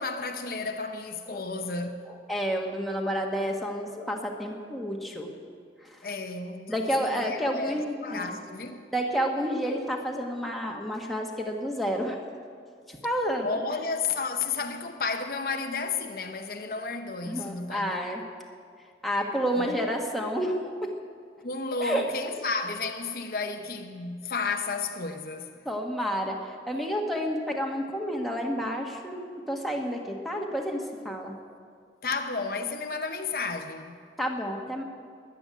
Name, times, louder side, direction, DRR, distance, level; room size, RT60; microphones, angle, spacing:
voice 1, 0.0-2.1 6.0-8.8 13.4-17.9 19.6-19.9 21.4-25.5 32.0-34.0, left 4 dB, 55° left, 0.8 m, -32 dB
voice 2, 2.3-5.3 5.8-6.0 6.7-8.4 8.9-12.2 12.9-13.6 17.3-18.2 19.0-20.9 21.8-22.0 25.6-31.4 34.2-34.8, equal, ahead, 1.5 m, -30 dB
14.5 x 10.5 x 9.4 m
head